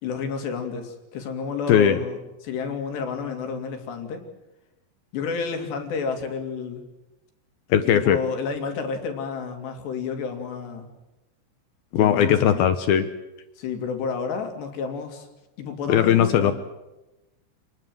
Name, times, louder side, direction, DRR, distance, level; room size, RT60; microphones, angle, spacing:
voice 1, 0.0-4.2 5.1-6.8 7.9-10.9 12.0-12.7 13.6-15.3 15.6-16.5, left 5 dB, 60° left, 5 dB, 4.9 m, -30 dB
voice 2, 1.7-2.0 7.7-8.2 11.9-13.0 15.9-16.5, left 9 dB, 80° left, 10 dB, 2.2 m, -18 dB
28.5 x 20.5 x 7.7 m, 0.97 s
omnidirectional pair, 5.8 m